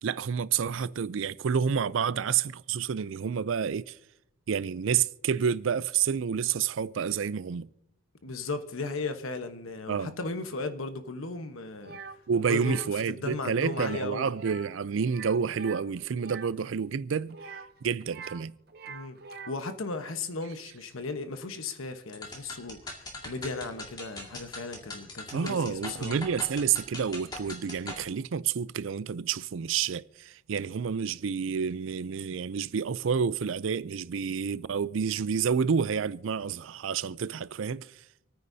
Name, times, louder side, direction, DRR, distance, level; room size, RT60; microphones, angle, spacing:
voice 1, 0.0-4.0 4.5-7.7 9.9-10.1 12.3-17.4 17.8-18.5 25.3-37.9, right 6 dB, 75° right, 0.4 m, -29 dB
voice 2, 8.2-12.0 12.5-12.8 13.1-14.3 18.9-19.2 19.5-26.2, left 3 dB, 85° left, 1.1 m, -36 dB
sound 1, 11.8-12.2 12.5-12.9 13.7-14.1 14.3-14.7 15.0-16.5 17.3-18.4 18.7-19.7, right 5 dB, 50° right, 0.8 m, -44 dB
sound 2, 22.1-28.0, left 2 dB, 20° left, 2.0 m, -41 dB
28.0 x 9.5 x 2.7 m
head